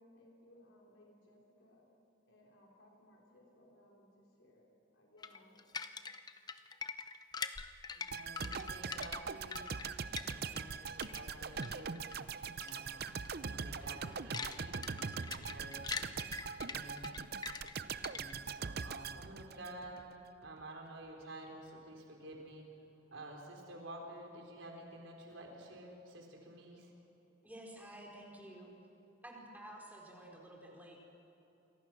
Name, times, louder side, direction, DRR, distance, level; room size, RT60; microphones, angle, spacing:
voice 1, 0.0-1.8 2.2-4.7 4.9-5.6, left 1 dB, 80° left, -2 dB, 4.2 m, -63 dB
sound 1, 5.2-10.7 11.0-12.2 12.6-12.8 13.1-13.3 13.7-18.5, left 5 dB, 20° left, 0.7 m, -44 dB
voice 2, 7.9-9.8 10.3-12.1 12.6-16.1 16.6-17.2 18.0-20.1 20.4-22.7 23.1-26.9, right 1 dB, 85° right, 1 dB, 4.4 m, -51 dB
sound 2, 8.1-20.1 20.4-20.6, right 5 dB, 55° right, 0.6 m, -42 dB
voice 3, 27.4-28.7 29.2-31.0, right 1 dB, 10° right, -1 dB, 4.5 m, -51 dB
28.5 x 23.5 x 6.2 m, 2.9 s
head